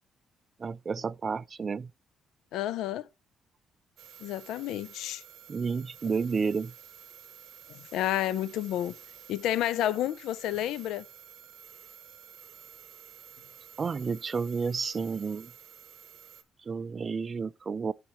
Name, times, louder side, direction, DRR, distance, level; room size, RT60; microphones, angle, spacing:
voice 1, 0.6-1.9 5.5-6.7 13.8-15.5 16.7-17.9, right 5 dB, 40° right, 0.3 m, -31 dB
voice 2, 2.5-3.1 4.2-5.2 7.7-9.0 9.3-11.1, left 12 dB, 85° left, 0.4 m, -30 dB
sound 1, 4.0-16.4, right 9 dB, 85° right, 0.8 m, -51 dB
11.5 x 4.4 x 3.0 m
cardioid pair, 90°, 0 cm